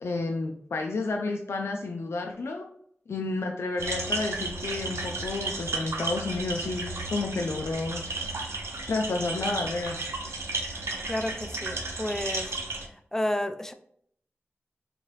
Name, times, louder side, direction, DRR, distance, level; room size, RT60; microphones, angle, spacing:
voice 1, 0.0-2.7 3.1-8.0 8.9-10.0, left 3 dB, 85° left, 2 dB, 0.4 m, -31 dB
sound 1, 3.8-12.9, right 3 dB, 90° right, 0.6 m, -33 dB
voice 2, 11.1-12.6 13.1-13.7, left 1 dB, 10° left, 8 dB, 0.4 m, -31 dB
3.7 x 3.1 x 3.0 m, 0.67 s
wide cardioid pair, 60°, 4 cm